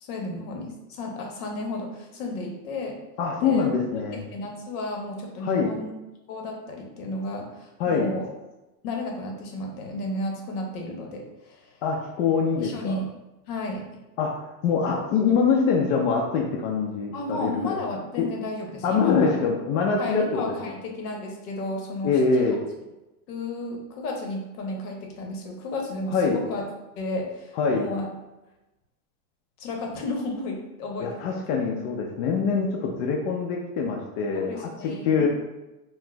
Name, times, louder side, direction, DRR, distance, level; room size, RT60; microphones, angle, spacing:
voice 1, 0.0-3.0 3.4-4.0 4.3-6.0 6.3-8.3 8.8-11.7 12.6-13.1 13.5-13.8 17.1-19.5 20.0-22.6 23.3-26.7 27.0-28.1 29.6-31.4 34.3-35.3, left 2 dB, 70° left, 1 dB, 0.9 m, -33 dB
voice 2, 3.2-4.2 5.4-5.7 7.8-8.1 11.8-13.0 14.2-14.3 14.6-17.8 18.2-18.3 18.8-20.4 22.0-22.6 26.1-26.4 27.6-27.9 31.0-35.3, left 5 dB, 50° left, -1 dB, 0.5 m, -24 dB
4.2 x 2.0 x 2.2 m, 1.0 s
supercardioid pair, 135°, 47 cm